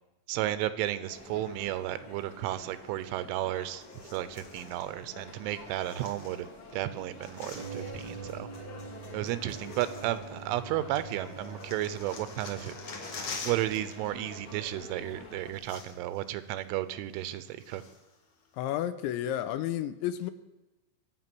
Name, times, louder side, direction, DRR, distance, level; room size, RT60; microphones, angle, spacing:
voice 1, 0.3-3.8 4.1-8.5 9.1-12.7 13.4-17.8, right 13 dB, 80° right, 14 dB, 3.2 m, -33 dB
sound 1, 1.1-15.5, left 2 dB, 40° left, 2.3 m, -48 dB
sound 2, 3.8-4.9 5.7-6.7 7.0-8.2 9.1-9.2 9.5-10.7 11.0-14.0 14.2-14.4 15.2-15.3 15.5-16.2 16.6-16.7 17.2-18.2 18.7-18.8, left 4 dB, 55° left, 1.6 m, -45 dB
sound 3, 7.5-17.4 17.7-17.8, right 4 dB, 65° right, 1.9 m, -47 dB
voice 2, 18.5-20.3, left 11 dB, 80° left, 12 dB, 2.8 m, -31 dB
24.0 x 8.8 x 6.1 m, 1.0 s
omnidirectional pair, 5.7 m